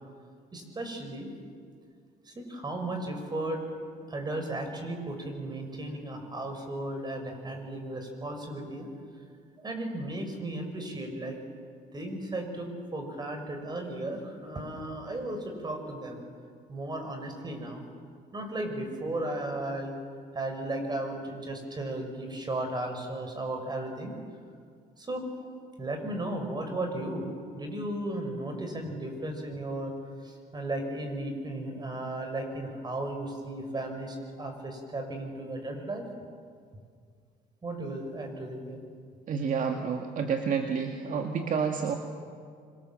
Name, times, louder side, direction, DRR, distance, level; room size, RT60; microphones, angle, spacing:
voice 1, 0.5-1.3 2.3-3.6 4.1-8.9 9.6-11.4 11.9-16.2 16.7-17.8 18.3-20.0 20.3-24.1 25.0-25.3 25.8-27.3 27.5-29.9 30.2-36.0 37.6-38.8, right 1 dB, 25° right, 5 dB, 5.8 m, -35 dB
voice 2, 39.3-41.9, right 6 dB, 50° right, 4 dB, 1.9 m, -29 dB
26.0 x 26.0 x 7.5 m, 2.1 s
cardioid pair, 110°, 17 cm